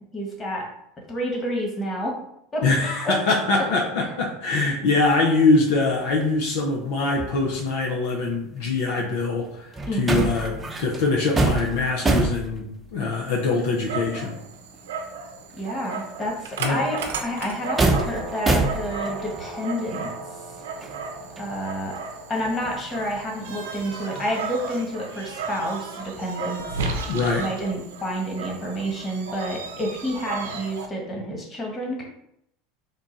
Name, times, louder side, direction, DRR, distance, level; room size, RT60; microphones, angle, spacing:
voice 1, 0.1-0.6 1.1-2.1 2.5-2.6 3.0-3.1 9.9-10.3 15.6-20.1 21.4-22.0 22.3-26.8 27.4-32.0, equal, 25° left, -1 dB, 1.5 m, -29 dB
voice 2, 2.6-14.4 16.6-16.8 27.1-27.4, left 3 dB, 70° left, -1 dB, 0.7 m, -23 dB
sound 1, 5.1-5.3 5.5-7.8 8.2-14.8 15.1-15.2 15.5-19.5 19.8-23.2 23.5-24.8, right 2 dB, 20° right, 0.8 m, -29 dB
Dog, 13.1-30.9, right 4 dB, 80° right, 0.6 m, -34 dB
3.7 x 2.4 x 4.0 m, 0.75 s
hypercardioid pair, 85°, 0 cm